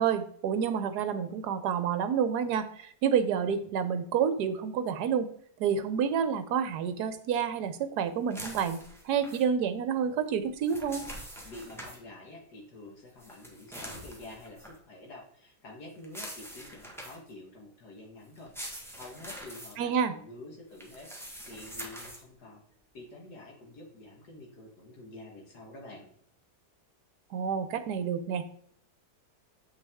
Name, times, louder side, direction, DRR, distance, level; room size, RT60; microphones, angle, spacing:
voice 1, 0.0-5.3 5.6-8.8 9.0-11.0 19.8-20.1 27.3-28.4, right 7 dB, 70° right, 11 dB, 1.2 m, -29 dB
sound 1, 8.3-9.4 10.4-12.0 13.2-14.8 16.0-17.3 18.3-19.7 20.7-22.2, equal, ahead, 1.2 m, -44 dB
voice 2, 11.4-18.5 18.9-22.6 22.9-26.1, left 2 dB, 65° left, -1 dB, 1.9 m, -48 dB
7.8 x 5.7 x 3.5 m, 0.63 s
omnidirectional pair, 1.9 m